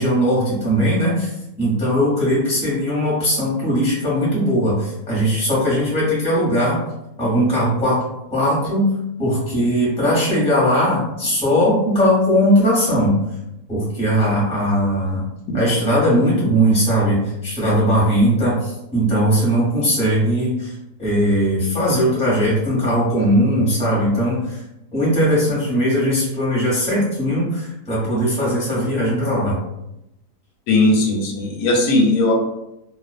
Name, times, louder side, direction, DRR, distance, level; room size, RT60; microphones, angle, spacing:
voice 1, 0.0-1.3 1.6-6.8 7.2-8.0 8.3-8.9 9.2-13.1 13.7-15.2 15.5-20.7 21.0-24.6 24.9-29.5, equal, 5° left, -7 dB, 0.7 m, -19 dB
voice 2, 30.7-32.3, left 2 dB, 70° left, 0 dB, 1.0 m, -17 dB
2.4 x 2.3 x 2.4 m, 0.87 s
omnidirectional pair, 1.7 m